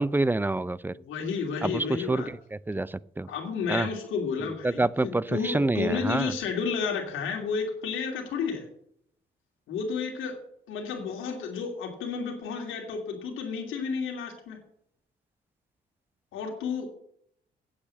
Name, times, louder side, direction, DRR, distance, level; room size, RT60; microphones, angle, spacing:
voice 1, 0.0-0.9 1.6-2.4 2.7-3.3 3.7-3.9 4.6-6.3, right 2 dB, 10° right, 20 dB, 0.4 m, -27 dB
voice 2, 0.9-2.3 3.3-8.6 9.7-10.4 10.7-14.6 16.3-16.9, left 5 dB, 85° left, 2 dB, 2.8 m, -31 dB
8.5 x 8.5 x 7.4 m, 0.69 s
cardioid pair, 90°, 20 cm